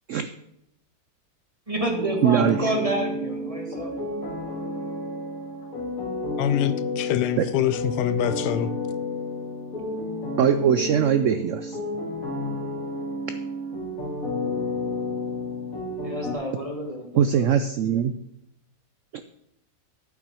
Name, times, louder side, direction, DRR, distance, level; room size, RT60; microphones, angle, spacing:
voice 1, 1.7-3.9 16.0-17.5, right 1 dB, 20° right, 1.6 m, -29 dB
sound 1, 1.8-16.4, left 2 dB, 60° left, 2.2 m, -31 dB
voice 2, 2.2-2.7 7.4-7.5 10.4-11.8 17.1-18.1 19.1-19.2, right 8 dB, 65° right, 0.8 m, -21 dB
voice 3, 6.4-8.7, left 10 dB, 85° left, 1.2 m, -25 dB
9.1 x 5.8 x 6.8 m
omnidirectional pair, 1.7 m